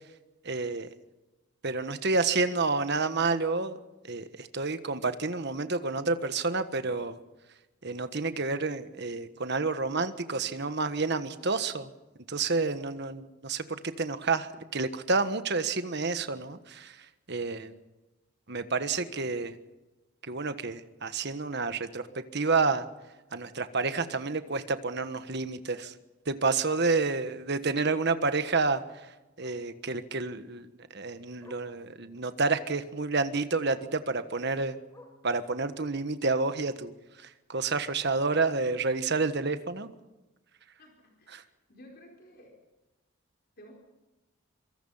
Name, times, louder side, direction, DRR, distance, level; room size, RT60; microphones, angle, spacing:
voice 1, 0.4-0.9 1.6-3.8 4.1-7.2 7.8-11.9 12.3-17.0 17.3-17.8 18.5-19.6 20.3-22.1 22.3-22.9 23.3-25.9 26.3-28.8 29.4-30.7 30.9-34.8 35.2-36.9 37.2-39.9 41.3-41.4, right 3 dB, 50° right, 10 dB, 1.4 m, -29 dB
Bark, 28.3-28.6 29.4-29.7 30.9-31.0 31.4-31.7 32.5-32.8 33.6-33.9 34.9-35.3 36.3-36.4, left 1 dB, 15° left, 3.7 m, -55 dB
voice 2, 40.8-42.6 43.6-43.7, equal, 45° left, 0 dB, 4.7 m, -54 dB
25.5 x 24.5 x 5.7 m, 1.1 s
head